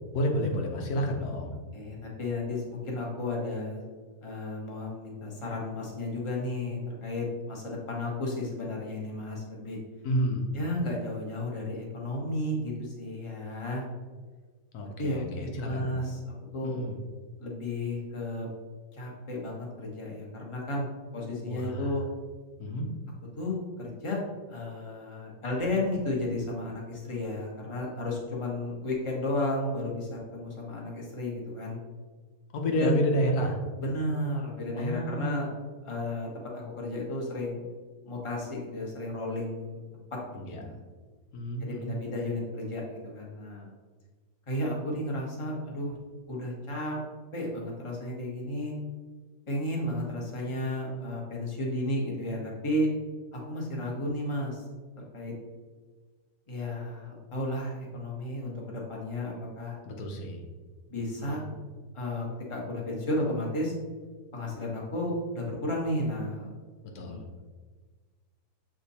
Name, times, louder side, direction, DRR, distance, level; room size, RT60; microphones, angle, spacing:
voice 1, 0.1-1.5 10.0-10.4 14.7-15.9 16.6-16.9 21.5-21.9 22.6-22.9 32.5-33.6 34.7-35.4 40.3-40.6 41.3-41.9 59.9-60.4 61.2-61.5 66.9-67.2, equal, 85° left, 2 dB, 1.4 m, -30 dB
voice 2, 1.7-3.9 4.2-9.8 10.5-13.8 15.0-15.2 15.5-16.9 17.4-18.5 18.9-20.9 21.1-22.0 23.3-24.2 24.5-31.8 32.8-33.0 33.8-35.5 35.8-37.7 38.0-40.2 40.5-40.8 41.6-43.7 44.5-46.0 46.3-47.0 47.3-48.7 49.5-52.9 53.3-54.6 55.0-55.3 56.5-59.8 60.9-61.4 61.9-63.7 64.3-66.5 66.9-67.2, left 1 dB, 20° left, -2 dB, 1.1 m, -33 dB
6.8 x 3.7 x 4.1 m, 1.4 s
omnidirectional pair, 1.6 m